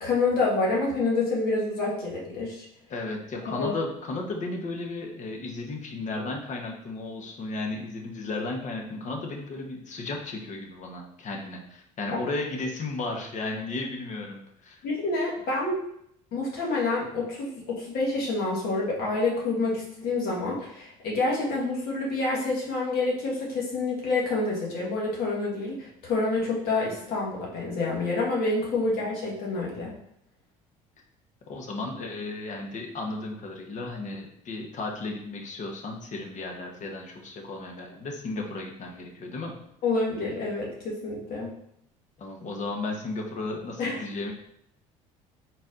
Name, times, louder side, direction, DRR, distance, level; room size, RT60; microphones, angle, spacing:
voice 1, 0.0-2.6 3.5-3.7 14.8-15.8 16.3-29.9 39.8-41.5 43.8-44.0, left 3 dB, 60° left, -3 dB, 1.4 m, -28 dB
voice 2, 2.9-14.8 28.8-29.0 31.5-39.5 42.2-44.3, left 2 dB, 45° left, 2 dB, 0.9 m, -34 dB
4.1 x 4.0 x 2.5 m, 0.74 s
hypercardioid pair, 70°, 17 cm